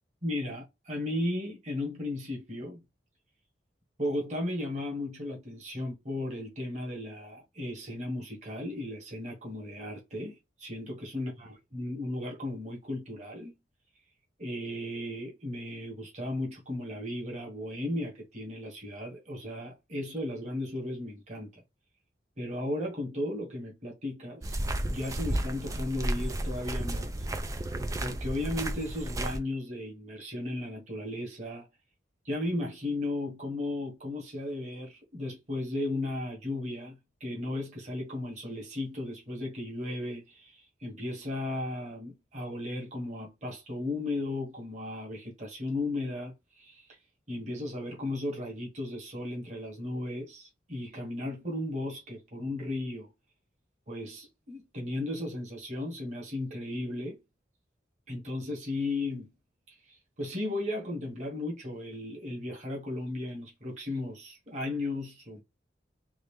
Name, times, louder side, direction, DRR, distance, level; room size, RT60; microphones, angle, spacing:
voice 1, 0.2-2.8 4.0-13.5 14.4-21.6 22.4-24.6 24.9-27.3 28.0-31.7 32.2-46.9 47.3-53.1 53.9-57.2 58.1-59.3 59.7-65.4, left 1 dB, 40° right, 1.4 m, -35 dB
sound 1, 24.4-29.4, right 1 dB, 20° right, 0.4 m, -33 dB
3.7 x 2.5 x 3.2 m
head